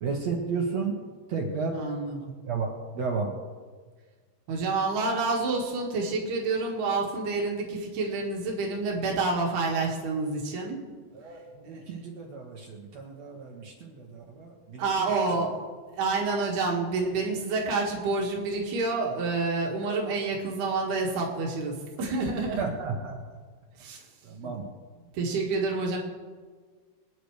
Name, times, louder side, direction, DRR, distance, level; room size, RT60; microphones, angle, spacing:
voice 1, 0.0-0.9 1.3-1.8 2.5-3.3 11.1-15.1 22.6-23.2 24.2-24.6, right 4 dB, 55° right, 0 dB, 2.3 m, -33 dB
voice 2, 1.7-2.3 4.5-10.8 11.6-12.0 14.8-15.6 15.9-22.7 23.8-24.0 24.4-24.5 25.1-26.0, right 3 dB, 80° right, -1 dB, 4.0 m, -28 dB
26.5 x 10.0 x 3.3 m, 1.5 s
omnidirectional pair, 4.6 m